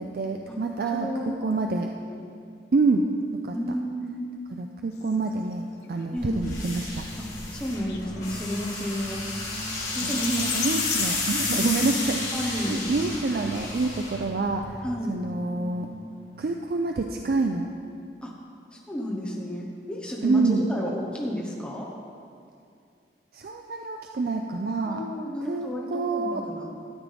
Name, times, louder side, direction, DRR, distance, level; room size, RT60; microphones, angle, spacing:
voice 1, 0.0-1.9 2.7-3.1 3.3-3.6 4.5-7.0 8.8-8.9 10.0-14.8 15.1-15.9 16.4-17.7 20.2-20.7 23.3-25.1 25.5-26.4, right 3 dB, 55° right, 3 dB, 0.4 m, -27 dB
voice 2, 0.9-1.5 2.0-2.2 3.5-4.3 6.1-6.7 7.2-9.2 9.9-10.3 11.5-12.0 12.3-12.9 14.8-15.2 18.2-18.4 18.9-20.4 20.7-21.9 24.8-26.7, equal, 5° left, -3 dB, 1.0 m, -32 dB
sound 1, 4.9-13.0, left 7 dB, 70° left, 0.7 m, -39 dB
sound 2, 6.2-14.8, left 2 dB, 40° left, 2.4 m, -32 dB
sound 3, 8.0-16.5, right 1 dB, 35° right, 1.8 m, -44 dB
13.0 x 7.4 x 3.4 m, 2.4 s
head